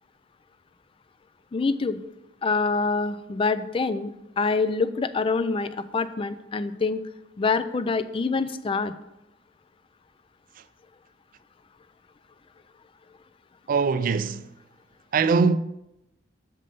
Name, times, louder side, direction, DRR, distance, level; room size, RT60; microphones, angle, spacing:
voice 1, 1.5-2.0 2.4-7.0 7.4-8.9, left 4 dB, 30° left, 0.4 m, -26 dB
voice 2, 13.7-14.5 15.1-15.6, right 5 dB, 50° right, 0.3 m, -22 dB
6.6 x 5.4 x 5.3 m
head